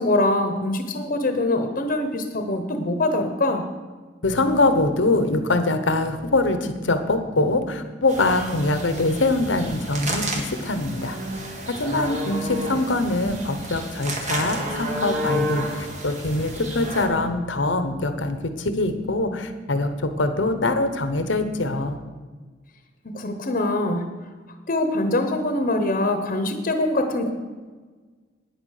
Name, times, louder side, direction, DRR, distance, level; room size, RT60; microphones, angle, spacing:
voice 1, 0.0-3.6 23.1-24.0 24.7-27.3, left 2 dB, 50° left, 7 dB, 1.0 m, -23 dB
voice 2, 4.2-11.2 11.7-22.0, left 2 dB, 85° left, 9 dB, 1.1 m, -23 dB
sound 1, 8.1-17.1, right 1 dB, 40° right, 1.9 m, -31 dB
9.7 x 9.4 x 6.6 m, 1.4 s
head